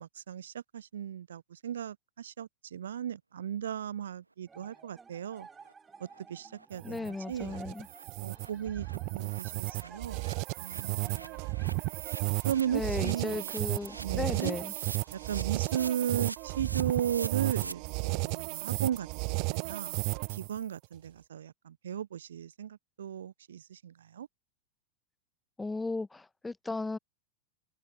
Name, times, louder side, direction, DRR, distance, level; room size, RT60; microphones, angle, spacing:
voice 1, 0.0-5.5 6.0-7.6 8.2-8.9 9.1-10.3 10.6-11.4 12.4-13.5 14.0-14.6 15.1-24.3, right 9 dB, 65° right, 0.5 m, -36 dB
sound 1, 4.5-16.0, right 5 dB, 15° right, 2.5 m, -55 dB
sound 2, 4.8-4.9 5.2-5.3 5.6-5.7 6.1-6.2 6.5-6.7 7.0-7.1 7.4-7.6 7.8-17.7, right 3 dB, 80° right, 1.6 m, -48 dB
sound 3, 6.7-20.6, right 36 dB, 45° right, 1.1 m, -34 dB
voice 2, 6.8-7.9 12.7-14.7 25.6-27.0, left 3 dB, 10° left, 1.1 m, -35 dB
figure-of-eight pair, 90°, 0 cm